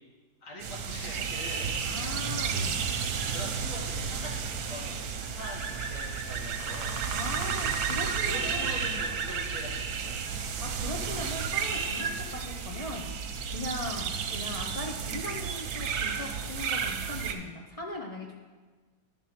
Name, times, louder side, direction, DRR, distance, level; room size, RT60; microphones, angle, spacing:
voice 1, 0.4-2.1 3.3-7.0 8.2-10.2, left 1 dB, 60° left, -2 dB, 2.0 m, -43 dB
sound 1, 0.6-17.3, right 6 dB, 85° right, 1.3 m, -32 dB
voice 2, 1.8-2.8 7.1-9.0 10.6-13.1 13.5-18.4, left 1 dB, 35° left, -1 dB, 0.6 m, -39 dB
sound 2, 3.6-13.6, right 1 dB, 75° left, 1.7 m, -47 dB
11.0 x 3.8 x 5.9 m, 1.4 s
omnidirectional pair, 1.6 m